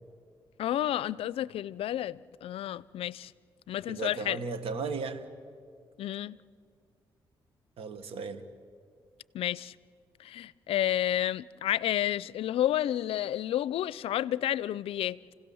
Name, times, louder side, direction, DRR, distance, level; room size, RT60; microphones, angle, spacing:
voice 1, 0.6-3.3 3.7-4.4 6.0-6.4 9.3-9.7 10.2-15.2, left 12 dB, 80° left, 0.5 m, -30 dB
voice 2, 3.9-5.3 7.8-8.4, right 4 dB, 80° right, 1.5 m, -35 dB
29.5 x 17.0 x 7.1 m
cardioid pair, 75°, 10 cm